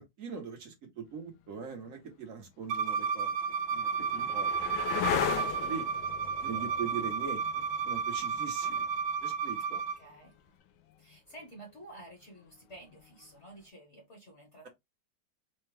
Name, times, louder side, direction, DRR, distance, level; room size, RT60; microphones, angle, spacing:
voice 1, 0.0-3.3 3.7-4.7 5.1-5.9 6.4-7.4 7.8-8.8 9.2-9.6, right 6 dB, 50° right, 1.3 m, -41 dB
sound 1, 1.8-1.9 2.8-10.4 12.7-13.3, left 10 dB, 85° left, 1.4 m, -38 dB
Bowed string instrument, 2.7-10.0, right 6 dB, 80° right, 1.3 m, -32 dB
voice 2, 9.7-10.3 11.0-14.7, right 1 dB, 45° left, 1.3 m, -51 dB
4.3 x 2.3 x 3.2 m
omnidirectional pair, 2.0 m